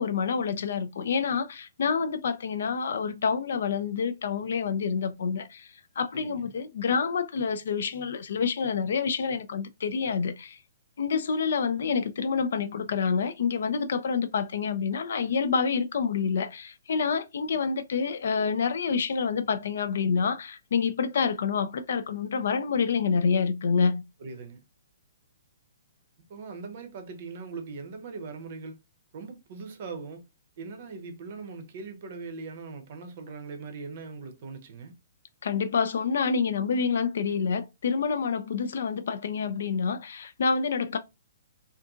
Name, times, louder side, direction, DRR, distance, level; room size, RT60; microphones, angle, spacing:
voice 1, 0.0-10.6 11.0-24.0 35.4-41.0, left 5 dB, 55° left, 0.3 m, -27 dB
voice 2, 6.1-6.5 24.2-24.6 26.3-28.8 29.1-30.2 30.6-34.9, right 4 dB, 45° right, 0.6 m, -40 dB
2.6 x 2.5 x 2.3 m
figure-of-eight pair, 125°, 0 cm